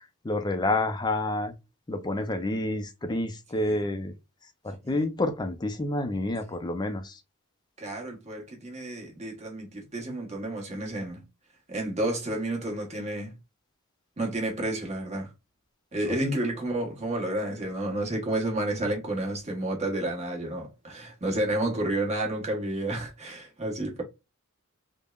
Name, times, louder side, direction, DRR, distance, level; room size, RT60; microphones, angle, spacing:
voice 1, 0.0-1.5 1.9-4.1 4.6-7.2 16.1-16.2, left 2 dB, 20° left, 0.4 m, -29 dB
voice 2, 7.8-11.2 11.7-13.3 14.2-15.3 15.9-24.0, right 1 dB, 30° right, 1.1 m, -31 dB
3.4 x 2.1 x 2.3 m
head